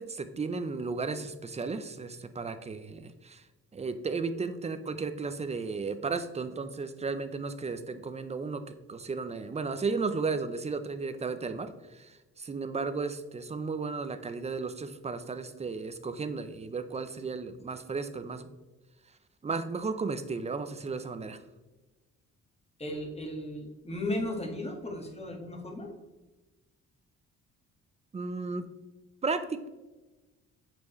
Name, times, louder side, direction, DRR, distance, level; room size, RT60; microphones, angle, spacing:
voice 1, 0.0-3.4 3.7-18.5 19.4-21.4 28.1-28.7 29.2-29.7, right 4 dB, 20° right, 10 dB, 0.6 m, -34 dB
voice 2, 22.8-25.9, left 1 dB, 20° left, 1 dB, 1.6 m, -35 dB
7.1 x 4.5 x 3.1 m, 1.1 s
cardioid pair, 90°, 30 cm